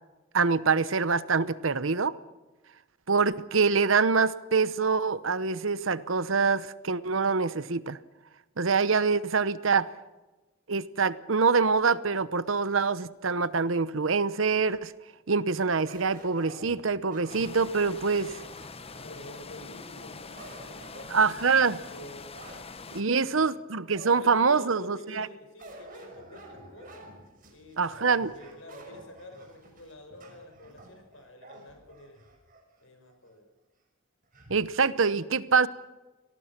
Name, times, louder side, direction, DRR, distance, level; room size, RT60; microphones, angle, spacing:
voice 1, 0.3-2.1 3.1-8.0 8.6-9.9 10.7-14.9 15.3-18.4 21.1-21.8 22.9-25.3 27.8-28.3 34.5-35.7, right 5 dB, 65° right, 0.9 m, -25 dB
sound 1, 15.9-19.7 20.2-22.7 23.2-23.3 23.9-24.5 25.6-32.6 33.1-33.2 34.3-34.7, right 1 dB, 40° right, 5.8 m, -49 dB
sound 2, 17.3-23.0, left 4 dB, 30° left, 1.2 m, -44 dB
voice 2, 18.9-22.3 22.8-23.6 24.1-27.1 27.5-32.2 32.8-33.5, left 1 dB, 65° left, 6.1 m, -48 dB
26.5 x 19.0 x 6.0 m
head